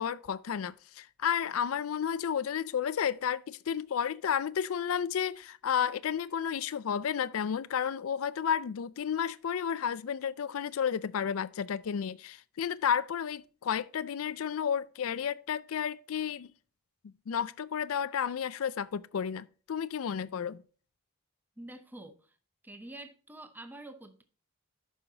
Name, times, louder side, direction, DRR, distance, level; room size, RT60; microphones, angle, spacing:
voice 1, 0.0-16.5 17.3-20.6, left 8 dB, 75° left, 0.4 m, -32 dB
voice 2, 21.6-22.4 22.6-24.2, right 1 dB, 10° right, 0.7 m, -47 dB
11.5 x 5.5 x 2.8 m
head